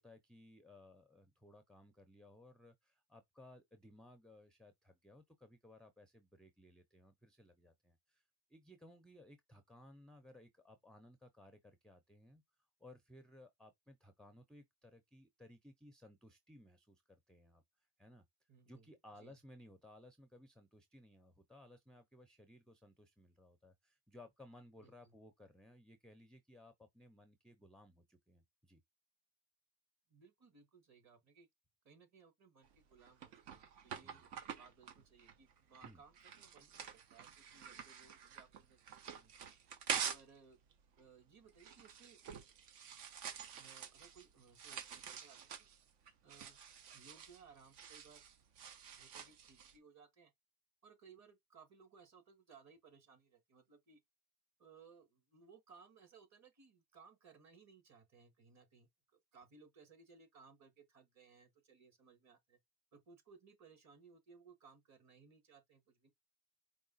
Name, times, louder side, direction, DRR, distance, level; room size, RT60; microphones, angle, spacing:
voice 1, 0.0-8.2 8.5-12.4 12.8-17.6 18.0-18.2 18.7-28.8 34.0-34.2 35.8-36.0, left 1 dB, ahead, 0.4 m, -60 dB
voice 2, 18.5-19.3 24.8-25.1 30.1-31.5 31.8-34.2 34.6-39.3 40.1-40.6 41.0-42.2 43.6-45.7 46.2-46.6 46.9-48.2 48.9-50.3 50.8-54.0 54.6-62.6 62.9-66.1, right 5 dB, 40° right, 1.6 m, -63 dB
sound 1, 32.6-40.4 40.7-49.8, right 7 dB, 70° right, 1.0 m, -47 dB
4.8 x 2.2 x 3.9 m
cardioid pair, 120°, 42 cm